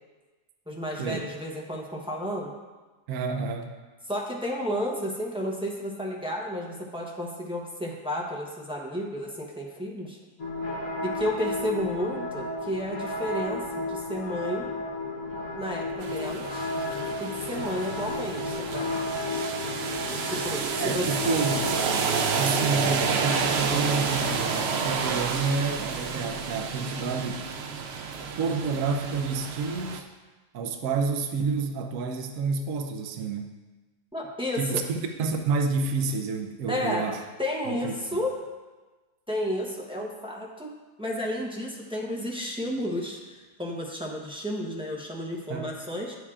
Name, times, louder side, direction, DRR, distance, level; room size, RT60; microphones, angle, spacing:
voice 1, 0.7-2.5 4.1-10.2 11.0-14.7 15.6-16.7 17.2-18.9 20.2-21.1 34.1-34.8 36.7-37.1 37.4-38.4 39.3-40.7 41.0-46.2, left 1 dB, 5° right, -3 dB, 0.5 m, -32 dB
voice 2, 3.1-3.8 20.8-21.7 22.3-27.4 28.4-30.1 30.5-33.5 34.6-34.8 35.2-37.2 37.7-38.2 45.5-45.7, right 4 dB, 60° right, 5 dB, 0.9 m, -29 dB
sound 1, 10.4-22.4, left 2 dB, 60° left, 1.4 m, -33 dB
sound 2, 16.0-30.0, right 5 dB, 85° right, 0.5 m, -30 dB
9.8 x 8.0 x 2.4 m, 1.2 s
omnidirectional pair, 1.7 m